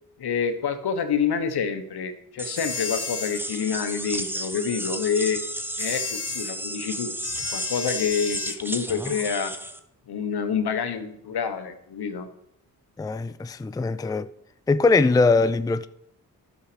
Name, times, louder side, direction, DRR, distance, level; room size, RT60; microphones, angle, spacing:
voice 1, 0.2-5.4 5.8-7.1 7.5-9.5 10.1-12.3, left 6 dB, 75° left, 1.2 m, -27 dB
sound 1, 2.4-9.8, right 1 dB, 5° right, 1.0 m, -33 dB
sound 2, 2.6-3.4 5.8-6.5 7.2-8.6, left 5 dB, 40° left, 1.1 m, -33 dB
voice 2, 13.0-14.3 14.7-15.9, left 3 dB, 10° left, 0.4 m, -21 dB
11.0 x 6.5 x 5.0 m
supercardioid pair, 45°, 39 cm